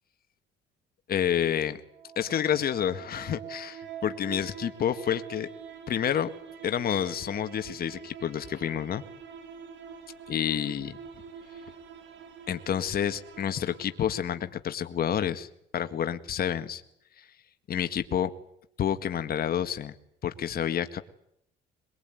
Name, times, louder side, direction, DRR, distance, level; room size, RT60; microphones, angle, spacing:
voice 1, 1.1-1.8 2.2-5.5 5.9-6.3 6.6-9.0 10.3-11.0 12.5-16.8 17.2-17.3 17.7-18.3 18.8-19.9 20.2-21.0, left 9 dB, 50° left, 9 dB, 1.9 m, -29 dB
sound 1, 1.7-14.7, right 7 dB, 75° right, 5.4 m, -45 dB
23.0 x 22.5 x 9.3 m, 0.72 s
cardioid pair, 110°, 19 cm